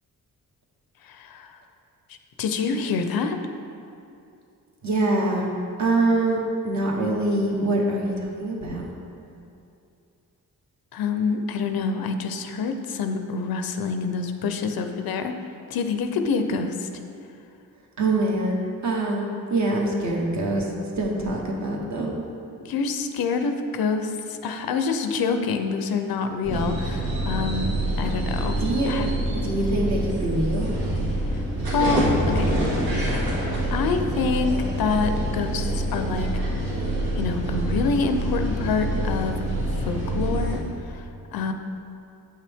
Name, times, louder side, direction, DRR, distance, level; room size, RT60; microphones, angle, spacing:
voice 1, 1.0-1.5 2.4-3.4 10.9-15.4 15.7-16.9 22.6-28.6 28.9-29.2 31.3-31.4 31.7-32.5 33.7-36.3 37.2-39.4 39.8-41.0 41.3-41.5, left 4 dB, 80° left, 7 dB, 0.6 m, -26 dB
voice 2, 4.8-5.5 5.8-8.9 18.0-22.2 28.6-28.9 29.3-30.7, right 2 dB, 50° right, -1 dB, 1.1 m, -24 dB
sound 1, 26.4-40.6, right 1 dB, 90° right, 1.7 m, -26 dB
8.2 x 5.6 x 3.5 m, 2.6 s
wide cardioid pair, 120°, 35 cm